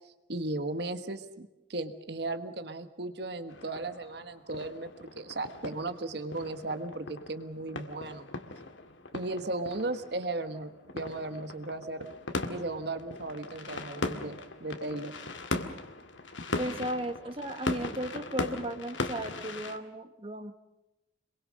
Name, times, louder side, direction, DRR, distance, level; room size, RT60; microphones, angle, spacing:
voice 1, 0.3-8.3 9.1-12.1 12.5-15.1, right 2 dB, 60° right, 9 dB, 1.5 m, -36 dB
sound 1, 3.5-19.8, left 2 dB, 80° left, 2.0 m, -39 dB
voice 2, 16.6-20.5, right 1 dB, 30° right, 7 dB, 1.7 m, -35 dB
27.0 x 22.5 x 6.4 m, 0.99 s
head